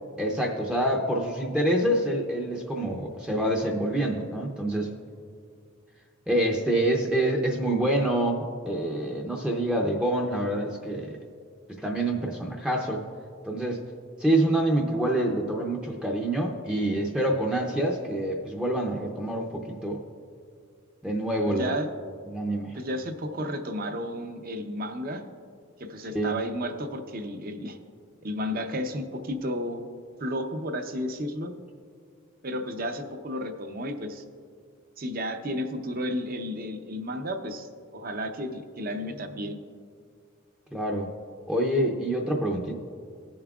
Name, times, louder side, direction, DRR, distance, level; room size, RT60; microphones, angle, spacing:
voice 1, 0.2-4.9 6.3-11.2 11.8-13.0 13.4-13.8 14.2-20.0 21.0-21.8 22.3-22.8 26.1-26.3 40.7-41.1 41.5-42.7, right 1 dB, 5° right, 0 dB, 0.6 m, -26 dB
voice 2, 21.5-21.9 22.7-25.2 25.8-27.8 28.2-29.8 30.2-31.5 32.4-34.2 35.0-39.6, equal, 45° right, 7 dB, 0.7 m, -32 dB
19.5 x 7.2 x 2.4 m, 2.2 s
head